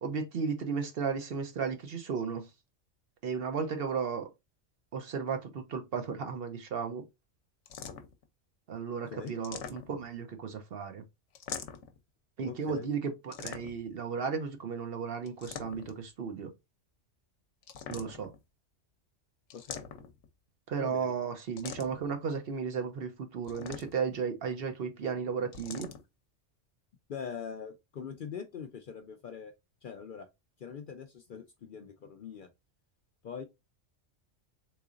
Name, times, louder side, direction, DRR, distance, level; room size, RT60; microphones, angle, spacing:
voice 1, 0.0-2.5 3.2-4.3 4.9-7.0 8.7-11.0 12.4-16.5 17.9-18.3 20.7-25.9, right 6 dB, 60° right, 0.8 m, -34 dB
sound 1, 7.7-8.2 9.3-10.2 11.3-12.0 13.3-14.0 15.3-16.0 17.6-18.4 19.5-20.3 21.6-22.1 23.4-24.2 25.5-26.0, left 7 dB, 80° left, 1.0 m, -43 dB
voice 2, 12.5-12.9 19.5-19.9 20.8-21.1 27.1-29.5 29.8-30.3 30.6-32.5 33.2-33.4, left 6 dB, 60° left, 0.6 m, -42 dB
3.8 x 3.1 x 2.4 m
omnidirectional pair, 1.2 m